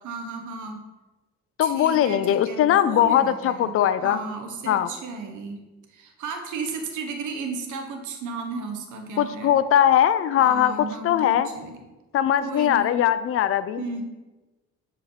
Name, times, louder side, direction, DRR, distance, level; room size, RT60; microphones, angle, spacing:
voice 1, 0.0-0.8 1.6-3.7 4.0-5.6 5.9-9.6 10.4-11.8 12.4-13.0 13.8-14.0, right 4 dB, 80° right, 4 dB, 1.0 m, -34 dB
voice 2, 1.6-4.2 4.7-4.9 9.2-11.5 12.1-13.8, left 10 dB, 50° left, 13 dB, 0.4 m, -20 dB
8.1 x 4.8 x 3.1 m, 1.2 s
cardioid pair, 90°, 30 cm